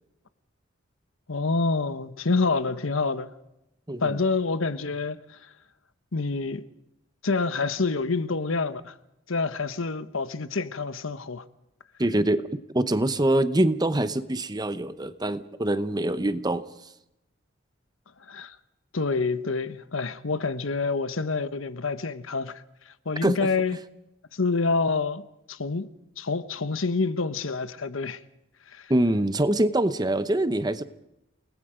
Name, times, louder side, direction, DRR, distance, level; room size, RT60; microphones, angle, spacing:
voice 1, 1.3-3.3 4.0-5.4 6.1-6.6 7.2-8.9 9.3-11.4 18.3-18.6 18.9-23.8 24.3-25.9 26.2-28.2 28.7-28.9, left 4 dB, 75° left, 1.1 m, -27 dB
voice 2, 3.9-4.2 12.0-16.7 23.2-23.5 28.9-30.8, right 1 dB, 20° right, 0.8 m, -24 dB
29.5 x 19.5 x 5.1 m
head